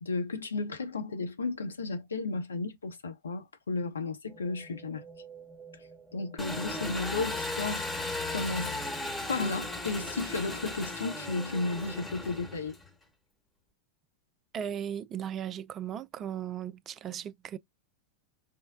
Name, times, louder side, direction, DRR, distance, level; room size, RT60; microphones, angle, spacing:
voice 1, 0.0-5.0 6.1-7.9 8.3-8.8 9.3-12.8, left 3 dB, 70° left, 0.8 m, -33 dB
sound 1, 4.2-9.7, right 3 dB, 5° right, 0.8 m, -51 dB
Engine, 6.4-12.9, left 2 dB, 10° left, 1.1 m, -36 dB
voice 2, 14.5-17.6, right 9 dB, 30° right, 0.4 m, -37 dB
5.1 x 2.0 x 2.3 m
figure-of-eight pair, 90°, 0 cm